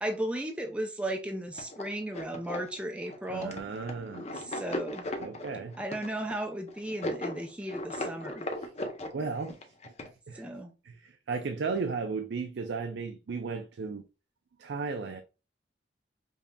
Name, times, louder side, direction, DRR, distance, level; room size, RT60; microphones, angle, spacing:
voice 1, 0.0-3.6 4.3-5.1 5.8-8.4 10.3-10.7, right 1 dB, 5° right, 0.5 m, -35 dB
sound 1, 1.5-10.1, left 1 dB, 35° left, 0.6 m, -37 dB
voice 2, 3.3-4.6 5.2-5.8 9.1-9.6 9.9-10.0 10.3-10.4 10.8-14.0 14.6-15.2, right 4 dB, 70° right, 0.4 m, -35 dB
5.2 x 2.7 x 2.2 m
head